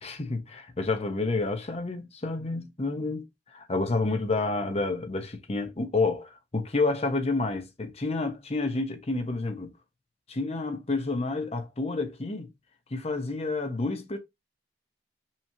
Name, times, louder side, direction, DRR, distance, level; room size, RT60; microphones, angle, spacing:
voice 1, 0.0-3.2 3.5-9.7 10.3-12.5 12.9-14.2, left 3 dB, 35° left, 0.8 m, -29 dB
5.7 x 3.1 x 2.7 m
head